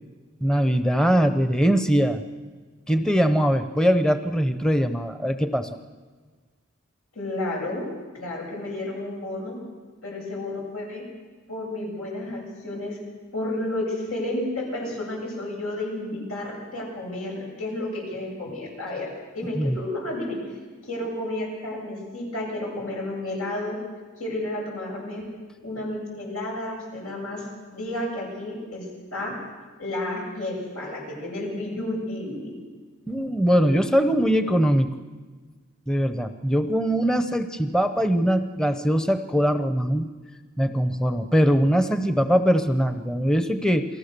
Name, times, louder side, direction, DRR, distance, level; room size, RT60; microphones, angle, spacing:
voice 1, 0.4-2.2 2.9-5.7 19.6-19.8 33.1-34.9 35.9-40.1 40.6-43.9, equal, 5° left, 8 dB, 0.8 m, -21 dB
voice 2, 7.1-7.9 8.1-9.6 10.0-11.0 11.5-13.0 13.3-19.1 19.3-20.4 20.8-23.8 24.2-29.4 29.8-32.6, left 1 dB, 90° left, -2 dB, 8.0 m, -31 dB
28.5 x 18.5 x 6.8 m, 1.4 s
head